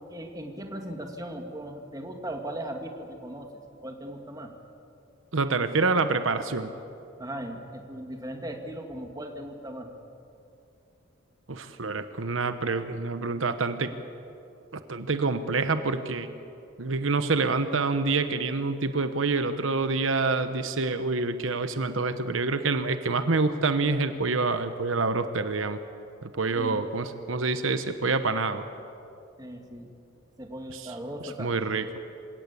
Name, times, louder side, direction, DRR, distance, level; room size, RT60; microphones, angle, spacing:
voice 1, 0.1-3.5 3.8-4.5 7.2-9.9 26.5-26.9 29.4-29.9 30.4-31.5, right 1 dB, 20° right, 3 dB, 2.2 m, -38 dB
voice 2, 5.3-6.7 11.5-13.9 14.7-16.3 16.8-25.8 26.2-28.6 30.7-30.9 31.2-31.9, right 3 dB, 75° right, 10 dB, 1.0 m, -27 dB
27.5 x 17.5 x 8.4 m, 2.7 s
head